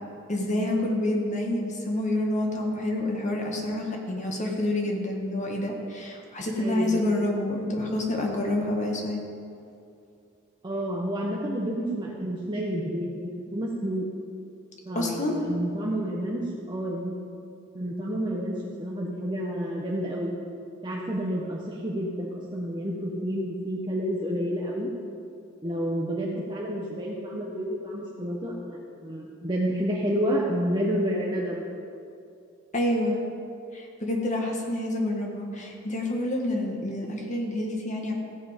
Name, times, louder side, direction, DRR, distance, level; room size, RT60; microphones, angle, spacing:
voice 1, 0.3-9.2 14.9-15.4 32.7-33.2 33.7-38.1, left 1 dB, 35° left, 0 dB, 1.5 m, -28 dB
voice 2, 6.6-7.1 10.6-14.1 14.9-17.1 17.7-20.3 20.8-24.9 25.6-31.7, equal, 25° right, -4 dB, 1.0 m, -30 dB
15.0 x 7.7 x 5.1 m, 2.5 s
head